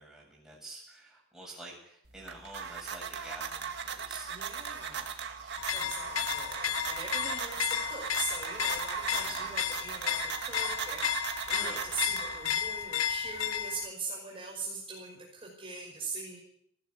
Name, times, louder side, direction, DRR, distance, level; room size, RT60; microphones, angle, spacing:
voice 1, 0.0-4.3 4.6-5.0 5.4-6.3 7.6-7.7 9.1-9.6 11.6-11.9, right 2 dB, ahead, -3 dB, 7.7 m, -49 dB
sound 1, 2.1-12.7, right 7 dB, 55° right, 2.1 m, -38 dB
voice 2, 4.3-16.4, right 4 dB, 25° right, -3 dB, 5.5 m, -41 dB
sound 2, 5.6-13.9, left 9 dB, 80° left, 0.8 m, -33 dB
19.5 x 16.0 x 8.3 m, 0.72 s
head